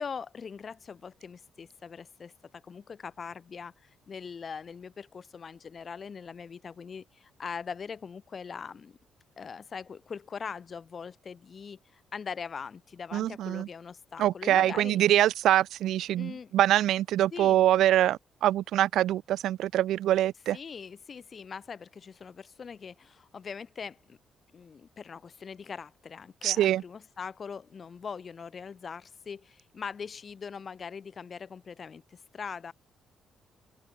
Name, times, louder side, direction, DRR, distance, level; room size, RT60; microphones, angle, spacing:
voice 1, 0.0-9.0 9.4-15.0 16.2-16.5 17.3-17.6 20.5-24.2 24.5-32.7, left 6 dB, 45° left, 3.5 m, -41 dB
voice 2, 13.1-13.7 14.2-20.6 26.4-26.8, right 12 dB, 80° right, 0.3 m, -24 dB
open air
cardioid pair, 90°, 0 cm